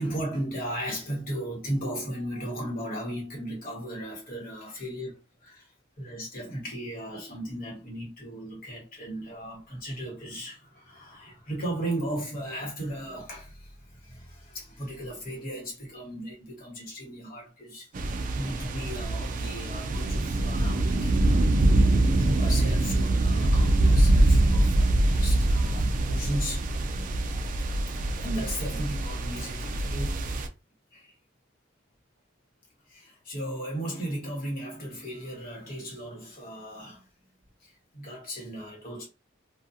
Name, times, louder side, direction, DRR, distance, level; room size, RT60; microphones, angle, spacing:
voice 1, 0.0-17.9 18.3-26.7 27.6-30.3 30.9-31.1 32.9-37.1 37.6-39.1, right 1 dB, 45° left, 1.2 m, -36 dB
sound 1, 17.9-30.5, right 2 dB, 40° right, 0.3 m, -24 dB
2.5 x 2.3 x 2.7 m
head